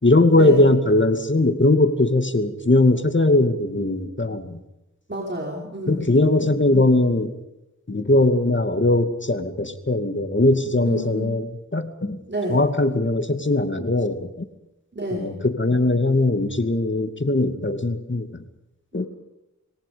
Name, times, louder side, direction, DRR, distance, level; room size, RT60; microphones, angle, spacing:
voice 1, 0.0-4.6 5.9-7.3 7.9-12.2 12.5-14.4 15.1-18.4 18.9-19.1, left 2 dB, 40° left, 7 dB, 2.5 m, -20 dB
voice 2, 5.1-6.1 10.8-11.3 12.3-12.6 14.9-15.4 19.0-19.1, right 1 dB, 35° right, -1 dB, 5.5 m, -29 dB
25.5 x 23.0 x 5.3 m, 0.94 s
wide cardioid pair, 50°, 29 cm